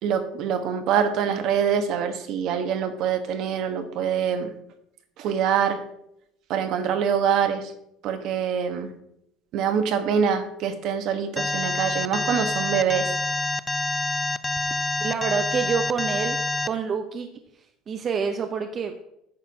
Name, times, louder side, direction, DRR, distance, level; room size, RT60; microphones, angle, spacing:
voice 1, 0.0-4.5 5.2-5.8 6.5-7.7 8.0-8.9 9.5-13.1, right 7 dB, 55° right, 8 dB, 1.1 m, -25 dB
Alarm, 11.4-16.7, left 2 dB, 10° left, 0.4 m, -27 dB
voice 2, 15.0-16.4 16.6-17.3 17.9-19.0, right 6 dB, 30° right, 6 dB, 0.7 m, -27 dB
9.8 x 4.4 x 6.2 m, 0.77 s
cardioid pair, 145°, 0 cm